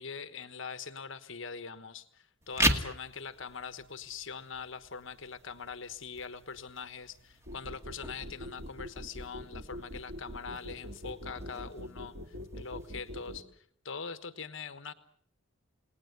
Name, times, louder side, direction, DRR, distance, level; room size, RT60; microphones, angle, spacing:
voice 1, 0.0-14.9, left 5 dB, 60° left, 11 dB, 1.3 m, -43 dB
sound 1, 2.4-13.4, right 1 dB, 15° right, 2.0 m, -39 dB
sound 2, 7.5-13.4, left 1 dB, 70° right, 2.8 m, -43 dB
29.5 x 19.5 x 8.1 m, 0.63 s
head